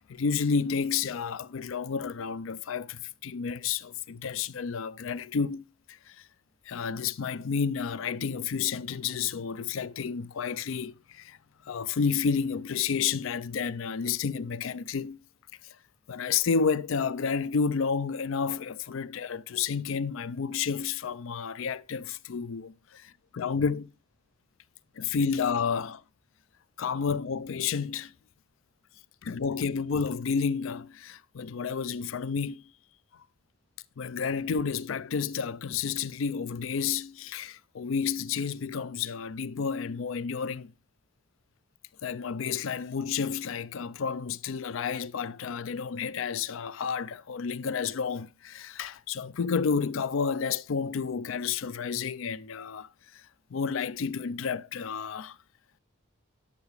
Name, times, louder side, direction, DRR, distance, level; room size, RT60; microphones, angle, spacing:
voice 1, 0.0-6.2 6.7-11.4 11.6-15.2 16.1-23.9 25.0-26.0 26.8-28.1 29.2-32.6 33.1-33.2 34.0-40.7 42.0-52.9 53.1-53.2 53.5-55.4, left 6 dB, 70° left, 0.4 m, -31 dB
9.9 x 7.1 x 3.3 m
head